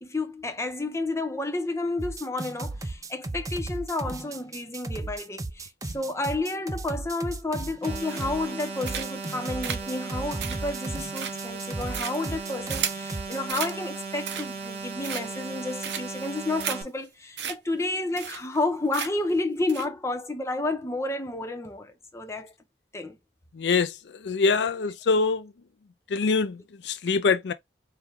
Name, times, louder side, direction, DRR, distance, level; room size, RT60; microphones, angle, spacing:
voice 1, 0.0-22.5 22.9-23.2, left 2 dB, 15° left, 0.8 m, -31 dB
sound 1, 2.0-13.4, right 2 dB, 20° right, 0.4 m, -35 dB
sound 2, 7.8-16.8, right 4 dB, 35° right, 1.3 m, -37 dB
sound 3, 8.1-8.5 8.8-9.3 9.6-13.1 13.5-13.8 14.1-14.7 15.0-15.5 15.8-16.2 16.6-16.8 17.0-17.1 17.4-17.5 17.8-17.9 18.2-18.6 18.9-19.3 19.7-19.9, right 8 dB, 70° right, 0.7 m, -34 dB
voice 2, 23.5-25.5 26.1-27.5, left 4 dB, 70° left, 0.4 m, -24 dB
4.5 x 2.3 x 3.5 m
head